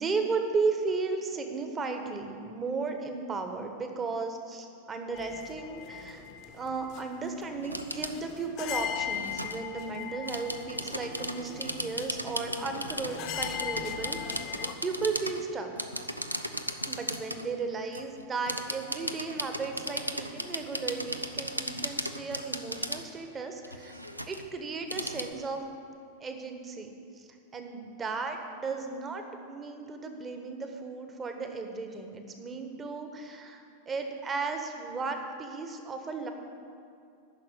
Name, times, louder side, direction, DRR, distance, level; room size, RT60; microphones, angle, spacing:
voice 1, 0.0-6.2 6.5-15.7 16.0-16.1 16.8-25.7 26.2-36.3, right 4 dB, 20° right, 5 dB, 1.2 m, -35 dB
sound 1, 5.1-14.7, left 10 dB, 40° left, 0.8 m, -39 dB
sound 2, 7.6-8.2 8.9-9.6 10.2-15.4 15.8-17.5 17.9-23.0 23.6-25.3, equal, 90° right, 0.5 m, -36 dB
10.5 x 6.3 x 8.9 m, 2.5 s
figure-of-eight pair, 90°, 0 cm